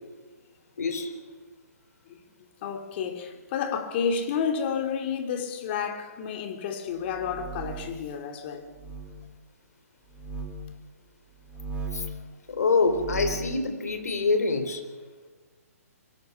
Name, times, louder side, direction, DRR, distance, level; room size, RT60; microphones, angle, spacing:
voice 1, 0.8-1.1 11.9-12.0 12.5-14.8, left 4 dB, 75° left, 4.1 m, -25 dB
voice 2, 2.6-8.7, left 6 dB, 40° left, 2.9 m, -30 dB
sound 1, 7.0-8.0 8.7-9.1 10.1-10.5 11.4-12.1 12.8-13.5, right 4 dB, 15° right, 5.5 m, -37 dB
24.5 x 22.5 x 5.8 m
hypercardioid pair, 135°, 8 cm